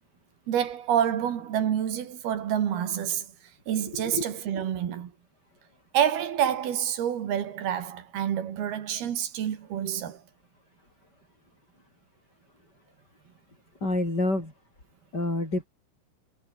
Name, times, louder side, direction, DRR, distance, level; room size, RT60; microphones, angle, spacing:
voice 1, 0.5-3.3 3.7-5.1 5.9-10.2, right 9 dB, 60° right, 3.9 m, -28 dB
voice 2, 3.9-4.2 4.5-4.6 13.8-14.5 15.1-15.7, left 2 dB, 20° left, 8.2 m, -28 dB
omnidirectional pair, 5.6 m